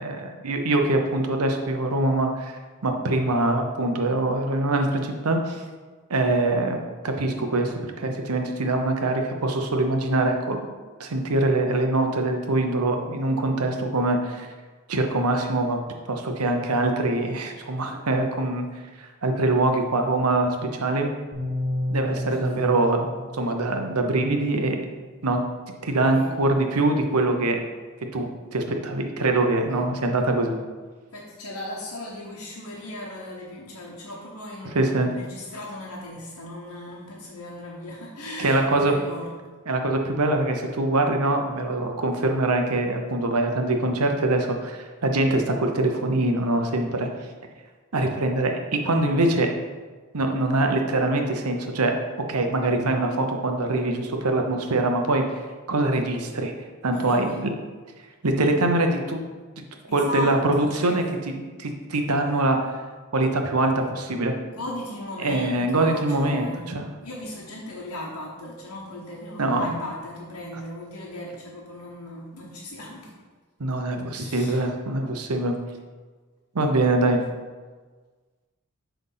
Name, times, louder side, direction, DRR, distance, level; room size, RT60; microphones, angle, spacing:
voice 1, 0.0-2.5 2.8-5.6 6.1-10.6 11.0-14.5 14.9-15.8 16.1-18.7 19.0-21.1 21.9-23.1 23.3-24.8 25.2-25.4 25.8-27.6 28.1-30.6 34.7-35.1 38.4-38.9 39.7-47.1 47.9-49.5 50.1-51.9 52.3-55.2 55.7-56.5 56.8-57.5 58.2-59.2 59.6-59.7 59.9-62.7 63.1-64.3 65.2-66.9 69.4-69.8 73.6-75.5 76.5-77.2, right 2 dB, 90° right, 4 dB, 0.9 m, -23 dB
sound 1, 21.3-25.4, left 1 dB, 40° right, 2.0 m, -32 dB
voice 2, 22.1-22.6 26.1-26.3 29.7-29.9 31.1-39.3 56.9-57.4 59.9-61.1 64.5-66.7 67.0-73.1 74.1-74.6, left 1 dB, 70° left, -5 dB, 1.2 m, -37 dB
7.9 x 3.5 x 5.6 m, 1.4 s
head